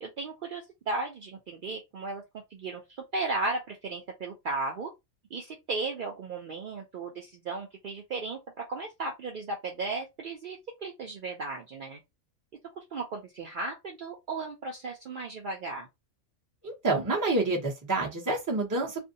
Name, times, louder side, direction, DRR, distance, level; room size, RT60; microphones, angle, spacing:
voice 1, 0.0-2.2 2.5-4.9 5.3-12.0 12.8-15.9, right 3 dB, 70° right, 0.4 m, -35 dB
voice 2, 16.6-19.0, right 2 dB, 20° right, 0.6 m, -28 dB
2.5 x 2.2 x 2.6 m
omnidirectional pair, 1.5 m